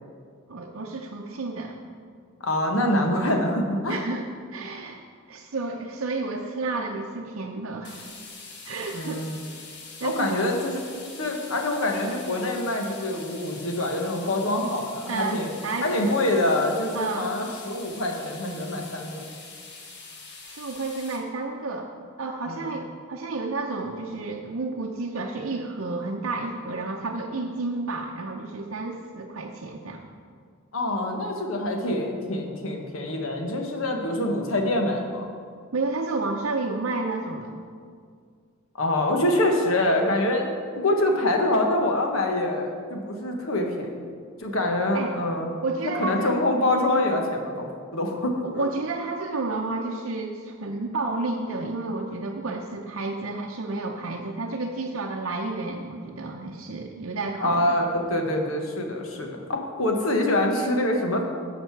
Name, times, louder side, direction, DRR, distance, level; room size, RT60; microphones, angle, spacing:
voice 1, 0.5-1.8 3.9-5.0 5.3-8.0 8.6-9.2 10.0-10.4 15.1-15.9 16.9-17.3 20.4-21.9 22.2-30.1 35.7-37.6 44.9-45.1 45.6-46.4 48.4-57.8, right 3 dB, 70° right, -1 dB, 0.7 m, -31 dB
voice 2, 2.4-4.0 8.9-9.4 10.0-10.8 11.2-15.5 15.8-19.2 22.5-22.6 30.7-35.3 38.8-44.0 44.4-45.5 46.0-48.7 57.4-61.2, left 1 dB, 70° left, 2 dB, 1.3 m, -25 dB
sound 1, 7.8-21.2, left 4 dB, 55° left, 1.4 m, -44 dB
11.5 x 6.6 x 4.6 m, 2.1 s
head